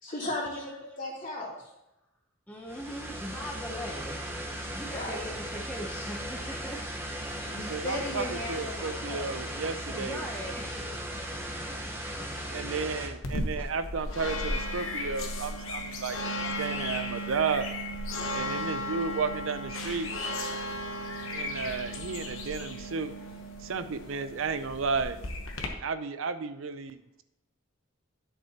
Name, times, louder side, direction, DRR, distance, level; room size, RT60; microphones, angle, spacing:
voice 1, 0.0-1.7 4.9-5.3 7.5-9.6, left 1 dB, 45° left, -4 dB, 2.8 m, -36 dB
voice 2, 2.5-7.8 9.6-11.9 12.2-12.3 13.5-13.7 16.1-17.2 18.5-18.9, equal, 10° left, -2 dB, 0.8 m, -42 dB
sound 1, 2.7-13.1, equal, 10° right, 1.2 m, -37 dB
voice 3, 7.7-10.2 12.5-16.2 16.6-17.7 18.3-20.1 21.3-23.1 23.6-25.2 25.8-27.2, right 4 dB, 80° right, 11 dB, 0.6 m, -33 dB
sound 2, 13.2-25.7, left 1 dB, 85° left, 1.1 m, -35 dB
11.0 x 6.7 x 2.9 m, 0.90 s
head